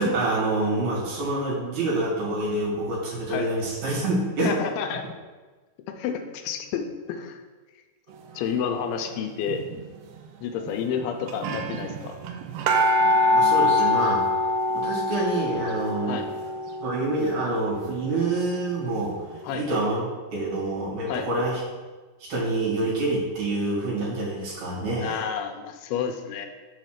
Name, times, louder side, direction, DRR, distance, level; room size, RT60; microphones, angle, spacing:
voice 1, 0.0-4.5 13.3-14.3 14.7-16.2 16.8-19.1 19.5-20.0 20.3-21.6 22.3-25.3, right 2 dB, 70° right, -6 dB, 4.0 m, -26 dB
voice 2, 4.4-5.1 5.9-7.4 8.4-9.6 10.4-12.2 16.1-16.3 19.4-19.7 21.0-21.3 25.0-26.5, left 7 dB, 85° left, 6 dB, 2.6 m, -30 dB
sound 1, 9.5-9.8 10.7-10.8 11.0-11.1 11.3-18.9 19.4-19.5, left 1 dB, 90° right, 2.6 m, -25 dB
6.8 x 4.2 x 6.5 m, 1.3 s
omnidirectional pair, 4.5 m